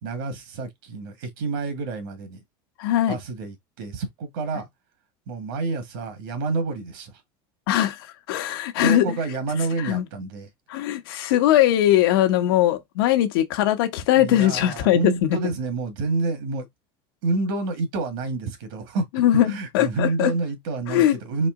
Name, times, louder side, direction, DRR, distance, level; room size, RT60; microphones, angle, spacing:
voice 1, 0.0-2.4 3.1-4.7 5.3-7.2 8.8-10.5 14.1-16.7 17.2-19.1 19.4-21.5, right 3 dB, 70° right, 1.7 m, -28 dB
voice 2, 2.8-3.2 7.7-9.2 9.8-10.0 10.7-15.4 19.2-20.3 20.9-21.2, left 12 dB, 90° left, 1.0 m, -20 dB
4.2 x 3.0 x 3.7 m
cardioid pair, 180°, 12 cm